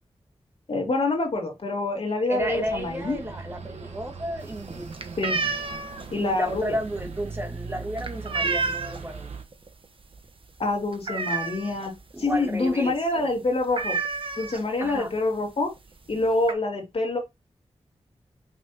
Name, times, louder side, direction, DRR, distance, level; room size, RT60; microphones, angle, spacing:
voice 1, 0.7-3.2 5.2-5.4 6.1-6.8 10.6-14.0 14.4-15.7 16.1-17.2, left 2 dB, 60° left, 2.8 m, -26 dB
voice 2, 2.3-5.0 6.1-9.3 12.1-13.3 14.8-15.1, right 1 dB, 20° right, 2.2 m, -32 dB
sound 1, 2.4-9.4, right 4 dB, 85° right, 1.4 m, -40 dB
sound 2, 4.4-9.2 9.5-9.8 10.1-10.2 10.6-12.0 12.3-12.4 12.7-12.9 13.2-13.3 13.7-15.0 15.7-15.8 16.1-16.5, right 4 dB, 55° right, 1.2 m, -30 dB
5.9 x 5.8 x 2.9 m
wide cardioid pair, 100°, 11 cm